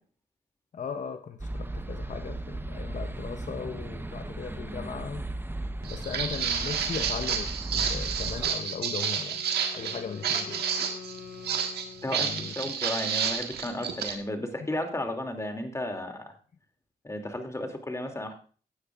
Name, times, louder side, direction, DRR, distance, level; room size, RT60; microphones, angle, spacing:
voice 1, 0.7-5.2 5.8-9.4 9.7-10.7 12.1-12.5, left 6 dB, 50° left, 0.7 m, -38 dB
sound 1, 1.4-8.5, right 1 dB, 15° right, 0.9 m, -36 dB
Walk footsteps, 5.8-14.1, right 7 dB, 85° right, 1.5 m, -30 dB
Wind instrument woodwind instrument, 8.8-12.8, left 6 dB, 85° left, 3.2 m, -46 dB
voice 2, 12.0-16.3 17.0-18.3, left 1 dB, 20° left, 2.6 m, -34 dB
16.0 x 9.6 x 2.5 m
cardioid pair, 70°, 16 cm